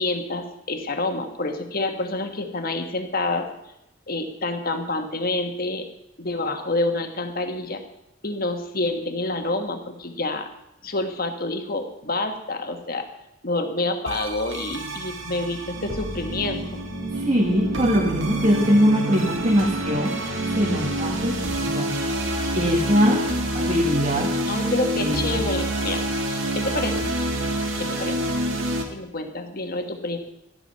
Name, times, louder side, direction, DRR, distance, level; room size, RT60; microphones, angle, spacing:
voice 1, 0.0-3.5 4.1-5.9 6.2-7.8 8.2-10.5 10.8-13.1 13.4-16.8 24.5-27.0 27.8-28.2 28.9-30.2, left 2 dB, 50° left, 6 dB, 1.5 m, -28 dB
sound 1, 14.1-28.8, right 1 dB, 75° right, 2.0 m, -27 dB
voice 2, 17.1-20.2 20.5-21.9 22.5-23.2 23.5-24.3 24.9-25.4, equal, 35° right, -2 dB, 1.6 m, -21 dB
13.0 x 10.5 x 5.6 m, 0.88 s
head